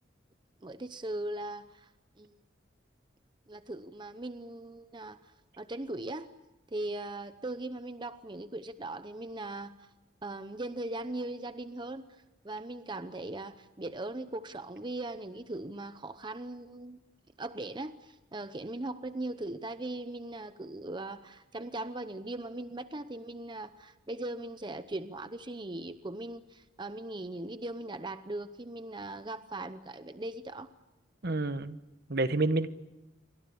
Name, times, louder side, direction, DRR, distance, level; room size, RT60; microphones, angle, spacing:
voice 1, 0.6-1.9 2.2-2.3 3.5-6.3 6.7-9.7 10.2-12.1 12.4-17.0 17.4-30.7, right 2 dB, 25° right, 11 dB, 0.8 m, -39 dB
voice 2, 31.2-31.8 32.1-32.7, right 2 dB, 55° right, 12 dB, 1.2 m, -28 dB
28.0 x 24.5 x 7.0 m, 0.96 s
head